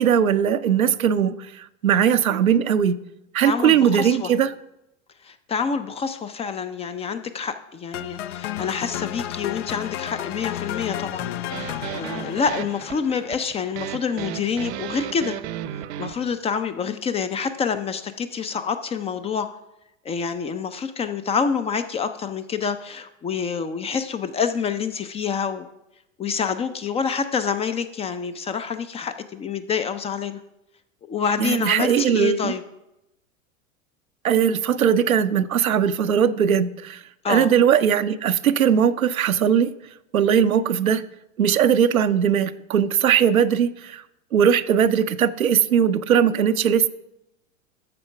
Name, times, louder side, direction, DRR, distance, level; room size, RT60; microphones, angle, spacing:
voice 1, 0.0-3.0 3.3-4.5 31.4-32.5 34.2-37.0 37.3-39.7 40.1-41.0 41.4-44.0 44.3-46.9, right 8 dB, 85° right, 11 dB, 0.7 m, -19 dB
voice 2, 3.4-4.3 5.2-15.4 16.0-19.5 20.0-25.7 26.2-30.4 31.1-32.6 37.2-37.5, left 6 dB, 15° left, 10 dB, 0.4 m, -27 dB
sound 1, 7.9-14.0, left 12 dB, 65° left, 0.6 m, -33 dB
sound 2, 11.5-16.4, right 12 dB, 50° right, 0.7 m, -34 dB
13.0 x 4.3 x 5.8 m, 0.87 s
hypercardioid pair, 95°, 41 cm